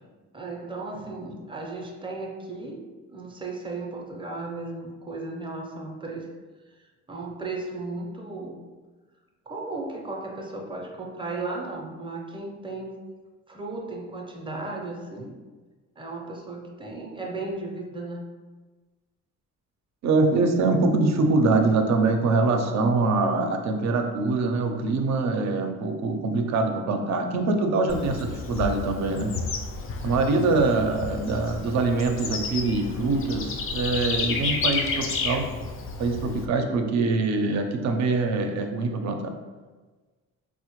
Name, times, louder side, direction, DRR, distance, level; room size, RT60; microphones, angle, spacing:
voice 1, 0.3-6.3 6.8-8.6 9.5-13.0 13.5-15.3 16.0-18.3, right 3 dB, 15° right, 1 dB, 0.6 m, -35 dB
voice 2, 20.0-29.4 30.0-35.7 36.0-39.3, right 3 dB, 65° right, 5 dB, 0.5 m, -24 dB
Bird / Insect, 27.9-36.5, left 4 dB, 45° left, 0.4 m, -31 dB
4.2 x 2.1 x 3.0 m, 1.3 s
cardioid pair, 90°, 30 cm